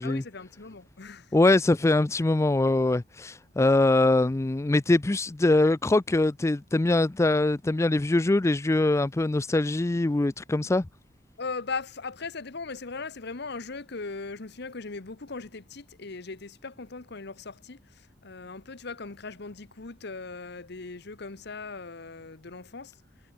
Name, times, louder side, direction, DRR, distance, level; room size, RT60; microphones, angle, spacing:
voice 1, 0.0-1.3 11.4-22.9, left 4 dB, 65° left, 1.1 m, -39 dB
voice 2, 1.3-10.9, left 2 dB, 15° left, 0.4 m, -23 dB
head